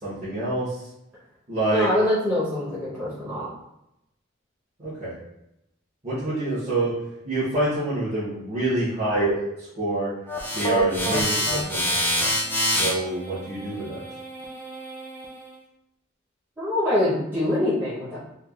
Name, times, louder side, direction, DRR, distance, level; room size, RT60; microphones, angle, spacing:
voice 1, 0.0-0.8 1.5-1.9 4.8-5.1 6.0-6.9 7.2-10.1 10.5-11.8 12.8-14.0, right 2 dB, 35° right, -14 dB, 1.0 m, -26 dB
voice 2, 1.7-3.5 16.6-18.2, left 1 dB, 10° right, -13 dB, 0.8 m, -24 dB
sound 1, 10.3-15.5, equal, 10° left, 0.4 m, -27 dB
3.2 x 2.3 x 2.4 m, 0.85 s
head